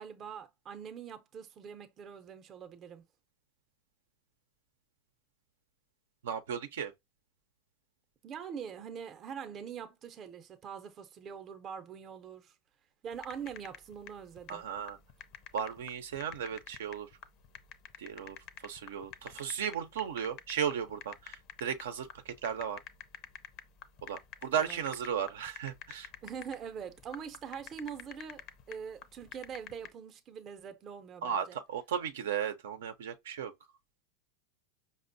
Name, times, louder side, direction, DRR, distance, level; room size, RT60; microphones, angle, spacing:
voice 1, 0.0-3.0 8.2-12.5 13.0-14.6 24.5-24.8 26.2-31.6, right 7 dB, 35° right, 0.5 m, -44 dB
voice 2, 6.2-6.9 14.5-15.0 15.5-17.1 18.0-18.4 18.6-22.8 24.0-26.1 31.2-33.5, right 8 dB, 85° right, 0.5 m, -35 dB
sound 1, 13.1-29.9, left 9 dB, 45° left, 0.5 m, -49 dB
5.1 x 2.0 x 2.6 m
supercardioid pair, 120°, 0 cm